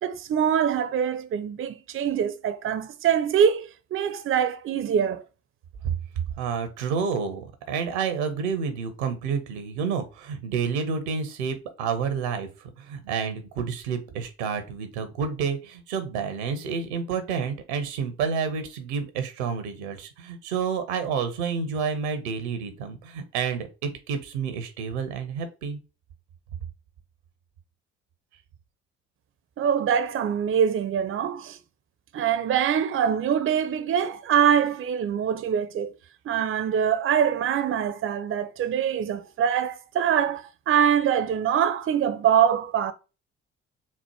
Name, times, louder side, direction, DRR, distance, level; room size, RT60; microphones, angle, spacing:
voice 1, 0.0-5.2 29.6-31.6 32.1-35.9 36.3-42.9, right 8 dB, 40° right, 0.5 m, -24 dB
voice 2, 6.4-25.8, right 6 dB, 85° right, 0.8 m, -29 dB
4.2 x 2.1 x 4.3 m
hypercardioid pair, 50°, 33 cm